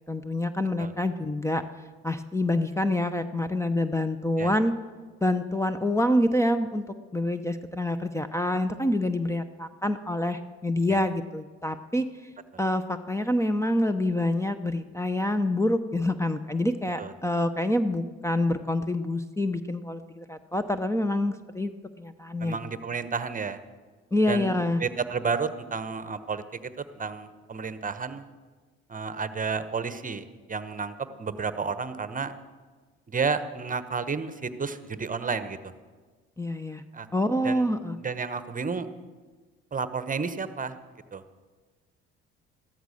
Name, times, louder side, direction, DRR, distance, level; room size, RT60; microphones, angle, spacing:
voice 1, 0.1-1.6 2.0-4.7 5.2-12.3 12.6-21.7 22.0-22.6 24.1-24.8 36.4-36.8 37.1-38.0, left 1 dB, 10° left, 11 dB, 0.8 m, -27 dB
voice 2, 22.4-23.6 24.3-24.5 24.8-26.4 26.8-28.2 28.9-32.3 33.1-35.6 36.9-37.1 37.4-37.6 38.0-38.9 39.7-40.8 41.1-41.2, right 5 dB, 30° right, 12 dB, 1.1 m, -31 dB
14.0 x 13.5 x 6.5 m, 1.4 s
hypercardioid pair, 65°, 29 cm